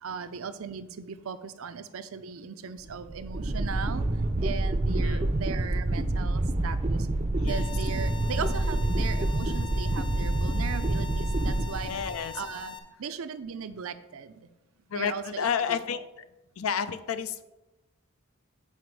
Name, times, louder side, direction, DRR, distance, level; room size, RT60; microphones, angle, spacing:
voice 1, 0.0-4.1 4.4-7.1 7.4-11.9 12.3-14.5 14.9-15.8, right 6 dB, 80° right, 12 dB, 0.5 m, -38 dB
sound 1, 2.9-12.4, right 2 dB, 30° right, 0.5 m, -27 dB
voice 2, 5.0-5.3 7.3-7.7 11.8-12.4 14.9-16.0 16.6-17.4, left 7 dB, 80° left, 12 dB, 0.5 m, -31 dB
sound 2, 7.5-12.8, left 7 dB, 20° left, 0.5 m, -42 dB
7.9 x 5.0 x 4.7 m, 1.0 s
head